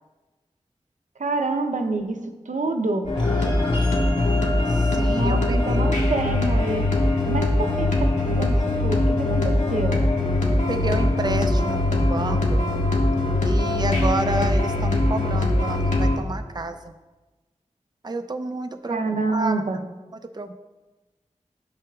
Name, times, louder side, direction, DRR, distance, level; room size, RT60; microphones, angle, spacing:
voice 1, 1.2-2.2 2.5-3.1 5.1-6.8 7.3-10.1 18.9-19.8, right 3 dB, 80° right, 5 dB, 0.8 m, -27 dB
sound 1, 3.1-16.2, left 2 dB, 75° left, 1.6 m, -22 dB
sound 2, 3.1-13.8, equal, 40° left, 2.5 m, -36 dB
voice 2, 4.7-6.0 10.7-12.6 13.4-16.9 18.0-19.6 20.3-20.6, right 2 dB, 35° right, 7 dB, 0.6 m, -30 dB
13.5 x 5.7 x 2.4 m, 1.2 s
wide cardioid pair, 45°, 13 cm